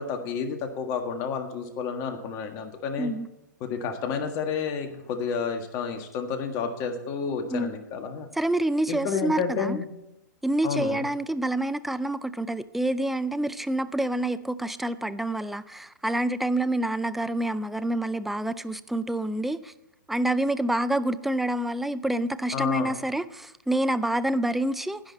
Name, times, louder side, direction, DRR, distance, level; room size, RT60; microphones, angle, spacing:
voice 1, 0.0-3.1 3.6-8.3 8.9-9.9 10.6-11.1 22.5-22.9, left 6 dB, 35° left, 6 dB, 1.7 m, -30 dB
voice 2, 8.3-9.8 10.4-19.7 20.1-25.0, right 1 dB, ahead, 14 dB, 0.4 m, -27 dB
10.5 x 10.5 x 4.1 m, 0.95 s
hypercardioid pair, 130°, 10 cm